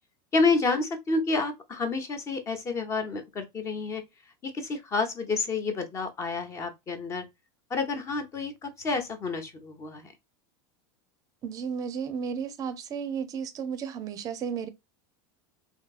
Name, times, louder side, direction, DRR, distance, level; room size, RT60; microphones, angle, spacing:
voice 1, 0.3-4.0 4.4-7.2 7.7-10.1, left 3 dB, 25° left, 0.7 m, -29 dB
voice 2, 11.4-14.7, right 7 dB, 30° right, 0.6 m, -33 dB
3.6 x 2.7 x 2.4 m
supercardioid pair, 150°, 12 cm